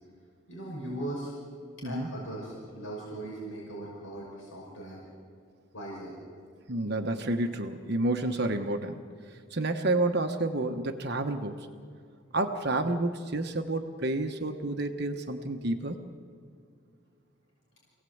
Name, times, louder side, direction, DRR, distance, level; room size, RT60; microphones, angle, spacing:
voice 1, 0.5-1.3 1.8-5.1 5.7-6.1, right 1 dB, 65° left, -4 dB, 5.7 m, -39 dB
voice 2, 1.8-2.1 6.7-9.0 9.3-11.7 12.3-16.0, right 2 dB, 50° right, 5 dB, 1.1 m, -30 dB
27.5 x 18.0 x 7.9 m, 2.2 s
head